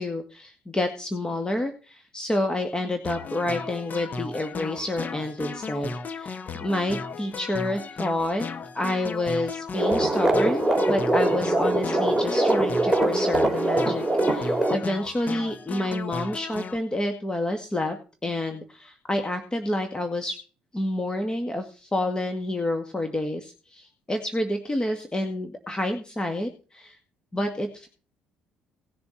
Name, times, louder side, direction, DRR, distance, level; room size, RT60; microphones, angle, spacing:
voice 1, 0.0-8.5 8.7-18.0 18.2-20.4 20.7-27.0 27.3-27.9, left 1 dB, 20° left, 6 dB, 2.0 m, -29 dB
sound 1, 3.0-16.8, left 4 dB, 40° left, 1.4 m, -35 dB
sound 2, 9.7-14.8, right 2 dB, 5° right, 3.0 m, -23 dB
18.5 x 7.0 x 4.2 m, 0.36 s
hypercardioid pair, 55°, 4 cm